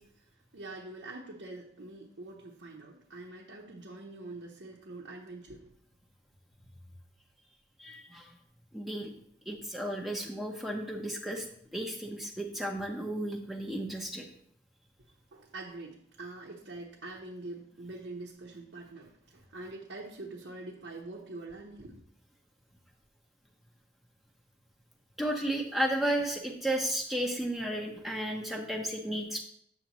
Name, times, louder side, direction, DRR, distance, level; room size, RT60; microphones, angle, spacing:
voice 1, 0.3-5.7 15.3-22.0, right 2 dB, 85° right, 1.0 m, -45 dB
voice 2, 7.8-8.3 8.7-9.1 9.5-11.5 11.7-14.3 25.2-29.4, right 1 dB, ahead, 0.7 m, -33 dB
8.4 x 7.1 x 3.0 m
head